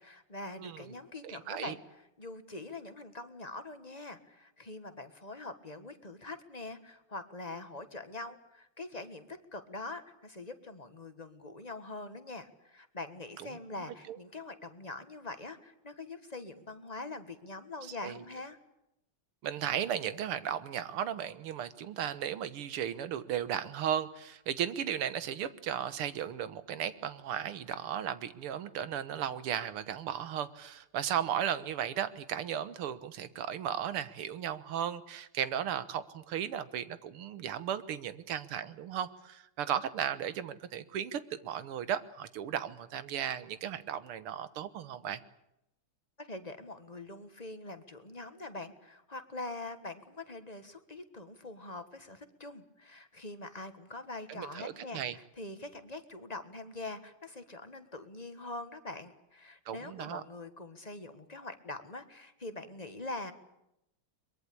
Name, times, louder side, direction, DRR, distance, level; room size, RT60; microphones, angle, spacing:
voice 1, 0.0-1.8 2.2-18.6 46.2-63.3, left 2 dB, 20° left, 9 dB, 1.4 m, -44 dB
voice 2, 0.6-0.9 1.2-1.7 13.4-13.5 14.1-14.2 18.0-18.2 19.4-45.2 54.3-55.2 59.7-60.2, right 9 dB, 90° right, 14 dB, 2.1 m, -35 dB
23.0 x 22.5 x 8.6 m, 0.85 s
omnidirectional pair, 2.4 m